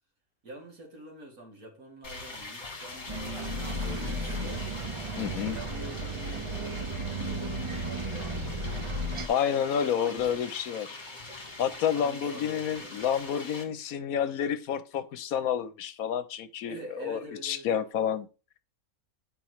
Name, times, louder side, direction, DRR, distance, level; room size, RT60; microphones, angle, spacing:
voice 1, 0.4-4.7 5.2-8.7 9.5-10.5 11.9-13.1 16.7-17.8, right 1 dB, 75° right, 2.8 m, -46 dB
sound 1, 2.0-13.6, left 3 dB, 35° left, 1.6 m, -43 dB
Bus, 3.1-9.3, right 1 dB, 55° right, 0.3 m, -34 dB
voice 2, 5.2-5.6 9.3-11.0 11.6-18.3, left 8 dB, 75° left, 1.1 m, -29 dB
8.7 x 5.4 x 3.1 m
omnidirectional pair, 1.5 m